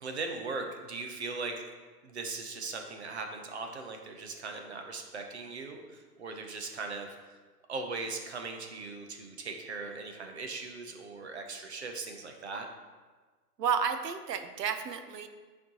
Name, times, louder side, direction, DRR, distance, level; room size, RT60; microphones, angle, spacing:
voice 1, 0.0-1.5 2.0-7.1 7.7-12.7, right 3 dB, 45° right, 4 dB, 0.7 m, -39 dB
voice 2, 13.6-15.3, right 7 dB, 90° right, 8 dB, 0.8 m, -31 dB
9.1 x 4.4 x 2.8 m, 1.4 s
hypercardioid pair, 180°, 48 cm